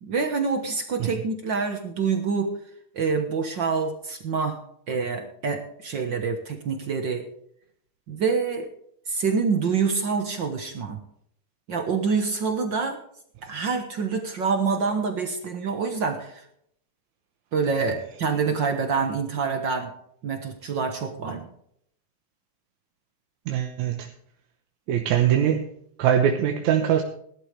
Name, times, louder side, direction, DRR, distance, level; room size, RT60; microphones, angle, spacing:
voice 1, 0.0-2.5 2.9-4.6 4.9-7.2 8.1-8.7 9.1-11.0 11.7-13.0 13.4-16.4 17.5-19.9 20.2-21.5, right 5 dB, 55° right, 1.3 m, -26 dB
voice 2, 23.5-24.1 24.9-25.6 26.0-27.0, right 9 dB, 75° right, 2.3 m, -22 dB
18.0 x 11.5 x 3.4 m
omnidirectional pair, 3.6 m